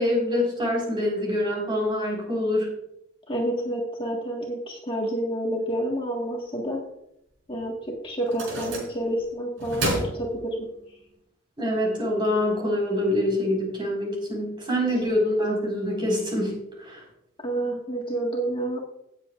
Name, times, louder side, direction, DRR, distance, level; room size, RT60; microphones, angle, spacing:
voice 1, 0.0-2.7 11.6-17.0, left 1 dB, 25° right, -2 dB, 4.6 m, -25 dB
voice 2, 3.3-6.8 7.5-7.7 8.0-10.5 17.4-18.8, right 1 dB, 25° left, -1 dB, 1.6 m, -29 dB
sound 1, 7.4-7.5 8.2-9.2 9.6-10.9, right 1 dB, 75° right, 4.3 m, -31 dB
17.5 x 7.8 x 2.5 m, 0.79 s
head